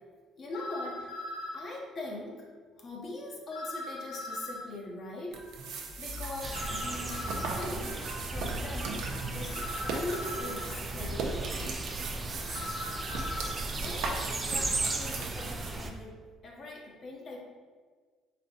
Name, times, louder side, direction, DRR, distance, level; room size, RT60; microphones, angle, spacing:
voice 1, 0.4-1.1 1.5-2.5 2.8-5.4 5.7-8.0 8.3-9.6 9.8-11.5 13.5-17.4, left 2 dB, 35° left, -2 dB, 0.6 m, -41 dB
sound 1, 0.5-1.6 3.5-4.7 6.5-7.7 9.5-10.7 12.5-13.6, left 2 dB, 80° left, 0.6 m, -39 dB
sound 2, 5.3-15.7, right 3 dB, 70° right, 0.5 m, -38 dB
sound 3, 6.4-15.9, right 2 dB, 15° right, 0.3 m, -36 dB
4.1 x 3.2 x 2.7 m, 1.5 s
cardioid pair, 155°, 0 cm